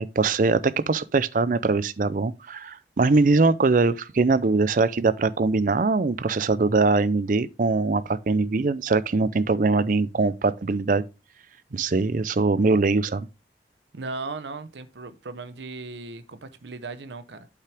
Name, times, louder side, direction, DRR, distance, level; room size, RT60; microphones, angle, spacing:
voice 1, 0.0-11.0 11.7-13.3, right 3 dB, 45° right, 0.5 m, -22 dB
voice 2, 13.9-17.5, right 3 dB, 85° right, 0.8 m, -37 dB
8.3 x 5.7 x 3.4 m
head